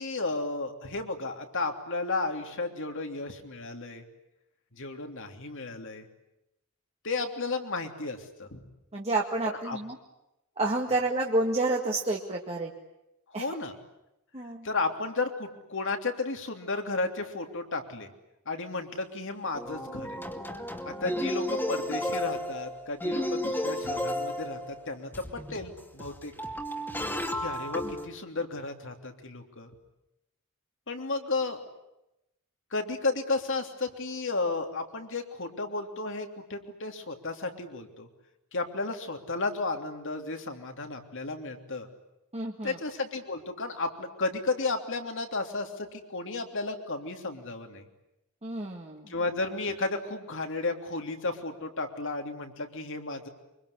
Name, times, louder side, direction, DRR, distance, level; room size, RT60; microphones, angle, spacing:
voice 1, 0.0-4.0 4.7-6.1 7.0-8.6 9.5-9.8 13.3-13.7 14.6-18.1 18.4-20.2 20.8-26.3 27.3-29.7 30.9-31.6 32.7-38.1 38.5-41.9 42.6-47.8 49.1-53.3, left 3 dB, 60° left, 5 dB, 3.2 m, -33 dB
voice 2, 8.9-10.0 10.6-12.7 13.3-13.6 14.3-14.7 42.3-42.8 48.4-49.1, right 2 dB, 30° right, -1 dB, 2.0 m, -29 dB
sound 1, 18.9-19.0 19.6-28.1, left 1 dB, 10° left, 2.4 m, -33 dB
24.5 x 24.0 x 9.9 m, 0.88 s
head